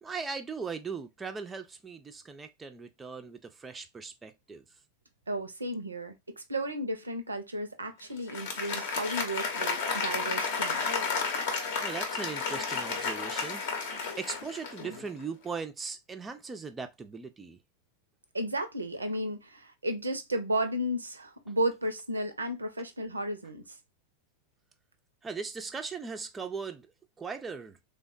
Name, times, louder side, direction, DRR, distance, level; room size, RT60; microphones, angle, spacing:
voice 1, 0.0-4.6 11.8-13.6 14.2-17.6 25.2-26.9 27.2-27.8, right 5 dB, 15° right, 0.3 m, -39 dB
voice 2, 5.3-10.9 18.3-23.6, right 1 dB, 80° right, 0.4 m, -33 dB
Applause, 8.2-15.1, left 5 dB, 55° left, 0.7 m, -32 dB
3.3 x 2.1 x 2.3 m
figure-of-eight pair, 90°, 0 cm